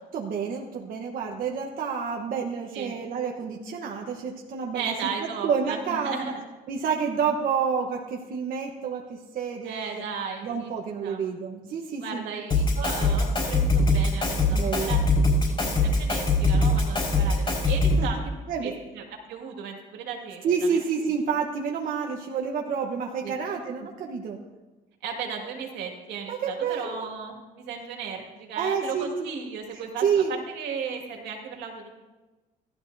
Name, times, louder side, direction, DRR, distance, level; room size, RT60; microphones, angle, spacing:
voice 1, 0.1-6.3 6.7-10.0 10.4-12.3 14.5-15.0 18.0-18.1 18.5-18.7 20.4-24.4 26.3-27.1 28.5-29.3 30.0-30.3, right 6 dB, 55° right, 0 dB, 1.2 m, -29 dB
voice 2, 4.7-6.4 9.6-10.7 11.0-11.2 12.0-15.0 15.5-18.2 18.6-20.4 20.7-20.8 23.2-23.3 25.0-31.9, right 6 dB, 80° right, 1 dB, 2.1 m, -35 dB
Drum kit, 12.5-18.1, left 2 dB, 35° left, 4.7 m, -22 dB
15.0 x 12.5 x 2.7 m, 1.2 s
cardioid pair, 110°, 17 cm